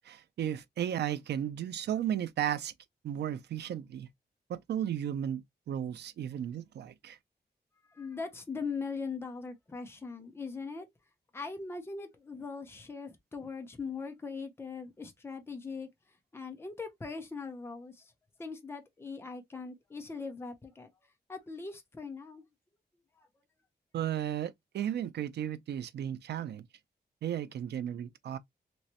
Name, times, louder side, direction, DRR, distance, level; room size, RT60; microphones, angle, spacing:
voice 1, 0.1-2.7 3.0-4.1 4.5-7.2 23.9-26.6 27.2-28.4, right 10 dB, 85° right, 0.5 m, -34 dB
voice 2, 7.9-10.9 11.3-15.9 16.3-18.1 18.4-20.9 21.3-22.4 23.2-23.3, left 4 dB, 15° left, 0.6 m, -40 dB
3.1 x 3.0 x 2.8 m
wide cardioid pair, 180°, 17 cm